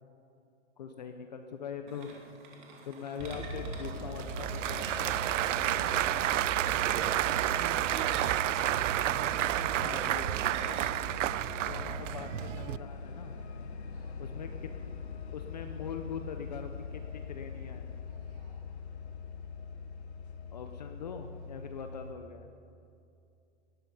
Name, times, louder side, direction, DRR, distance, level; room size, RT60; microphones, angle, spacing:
voice 1, 0.8-2.1 2.9-6.2 8.8-9.3 9.8-10.8 11.7-13.3 14.2-14.7 15.3-17.9 20.5-22.5, left 6 dB, 35° left, 6 dB, 0.8 m, -43 dB
sound 1, 1.9-11.4, right 4 dB, 40° right, 2.4 m, -50 dB
sound 2, 3.2-22.1, left 6 dB, 60° left, 1.3 m, -43 dB
Applause / Crowd, 3.2-12.8, right 13 dB, 85° right, 0.5 m, -30 dB
voice 2, 13.9-14.2 18.1-18.6, right 3 dB, 20° right, -1 dB, 2.6 m, -67 dB
18.0 x 13.5 x 5.5 m, 2.6 s
hypercardioid pair, 180°, 37 cm